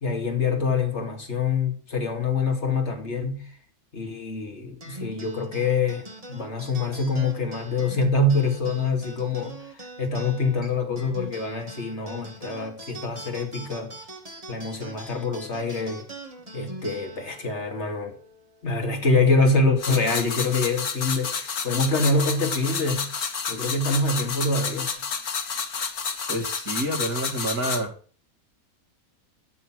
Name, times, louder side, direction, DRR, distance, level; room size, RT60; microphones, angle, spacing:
voice 1, 0.0-3.5 3.9-13.9 14.5-16.1 16.5-18.2 18.6-23.1 23.5-24.9, left 3 dB, 45° left, 2.9 m, -25 dB
sound 1, 4.8-19.6, right 2 dB, 25° right, 2.2 m, -43 dB
sound 2, 19.8-27.8, left 5 dB, 75° left, 2.0 m, -30 dB
voice 2, 26.3-27.9, right 1 dB, 70° right, 2.9 m, -28 dB
12.5 x 7.0 x 6.2 m
omnidirectional pair, 1.6 m